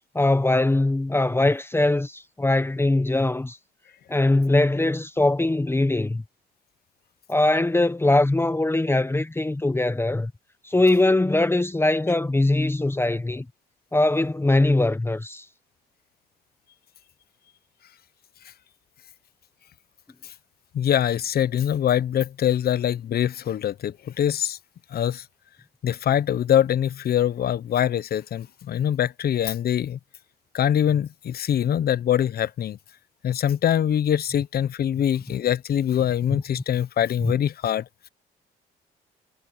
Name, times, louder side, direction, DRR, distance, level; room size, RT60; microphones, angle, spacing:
voice 1, 0.1-3.6 4.1-6.2 7.3-10.3 10.6-13.4 13.9-15.4 36.3-36.4 37.2-37.3, left 2 dB, 15° left, 1.1 m, -21 dB
voice 2, 20.7-24.6 24.9-25.2 25.8-30.0 30.5-32.8 33.2-37.8, left 10 dB, 60° left, 1.0 m, -23 dB
supercardioid pair, 70°, 18 cm